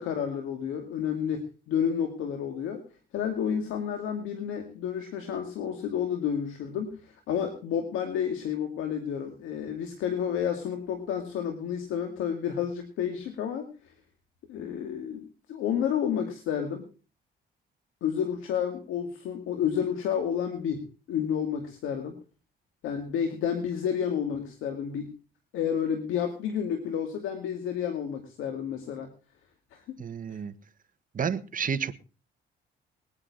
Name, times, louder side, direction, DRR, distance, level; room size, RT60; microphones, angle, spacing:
voice 1, 0.0-2.8 3.1-13.9 14.5-16.8 18.0-22.2 22.8-25.1 25.5-29.1 29.7-30.0, left 8 dB, 90° left, 2.3 m, -30 dB
voice 2, 30.0-30.5 31.1-31.9, right 6 dB, 45° right, 1.5 m, -30 dB
21.0 x 9.8 x 4.1 m
cardioid pair, 90°, 20 cm